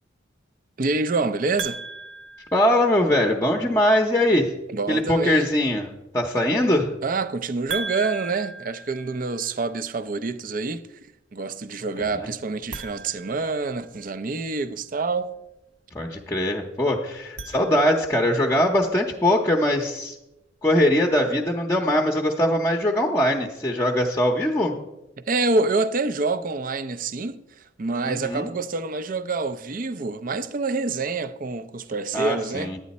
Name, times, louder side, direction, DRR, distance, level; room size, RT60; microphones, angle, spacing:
voice 1, 0.8-1.8 4.7-5.5 7.0-15.3 25.2-27.4 27.8-32.8, right 3 dB, 45° right, 0.5 m, -27 dB
sound 1, 1.6-3.3 7.7-9.7 12.6-14.2 17.1-18.3, right 4 dB, 65° right, 1.1 m, -37 dB
voice 2, 2.5-4.5 4.9-5.9 6.1-6.9 12.0-12.3 15.9-20.2 20.6-24.7 28.0-28.5 32.1-32.8, left 1 dB, 15° left, 0.7 m, -21 dB
11.0 x 8.9 x 4.2 m
head